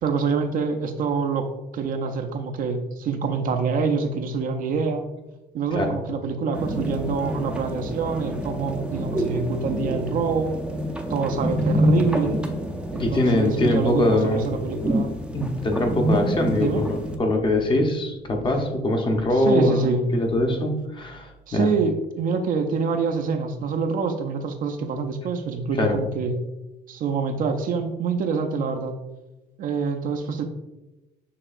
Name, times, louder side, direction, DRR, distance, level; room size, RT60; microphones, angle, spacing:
voice 1, 0.0-1.5 1.7-5.1 5.5-10.5 11.1-12.4 12.9-15.1 16.5-16.8 19.3-20.1 21.5-26.3 26.9-28.9 29.6-30.4, right 5 dB, 55° right, 6 dB, 0.5 m, -26 dB
sound 1, 6.5-17.2, equal, 5° right, 0.5 m, -27 dB
voice 2, 13.0-14.4 15.3-21.7 25.8-26.0, left 1 dB, 30° left, 3 dB, 0.8 m, -23 dB
6.6 x 2.8 x 2.5 m, 1.0 s
cardioid pair, 110°, 17 cm